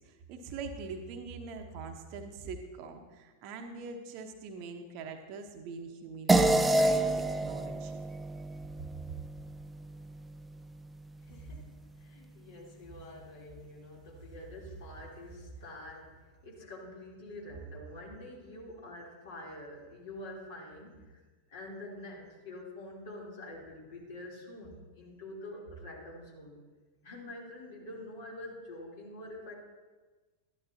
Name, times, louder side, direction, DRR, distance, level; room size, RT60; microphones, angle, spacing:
voice 1, 0.0-8.0, right 4 dB, 45° right, 5 dB, 1.1 m, -43 dB
sound 1, 6.3-11.0, right 2 dB, 10° right, 0.5 m, -29 dB
voice 2, 11.2-11.6 12.0-21.2 21.5-26.6 27.0-29.5, left 1 dB, 55° left, -3 dB, 3.4 m, -46 dB
13.5 x 11.0 x 2.9 m, 1.3 s
figure-of-eight pair, 90°, 0 cm